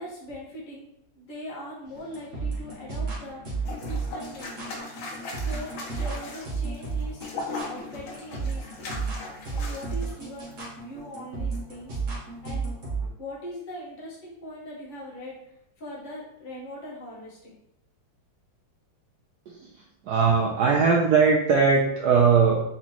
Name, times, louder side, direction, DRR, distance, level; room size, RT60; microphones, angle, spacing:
voice 1, 0.0-4.8 5.3-7.2 7.6-9.1 9.5-10.5 10.8-12.0 12.4-12.8 13.2-15.4 15.8-17.5, left 1 dB, 30° left, -5 dB, 1.2 m, -41 dB
sound 1, 1.9-13.1, right 4 dB, 45° right, 1.4 m, -33 dB
sound 2, 3.6-10.1 10.5-10.7, left 3 dB, 80° left, 1.7 m, -38 dB
voice 2, 20.0-22.6, right 5 dB, 70° right, -1 dB, 1.0 m, -20 dB
4.3 x 4.0 x 3.0 m, 0.84 s
omnidirectional pair, 2.2 m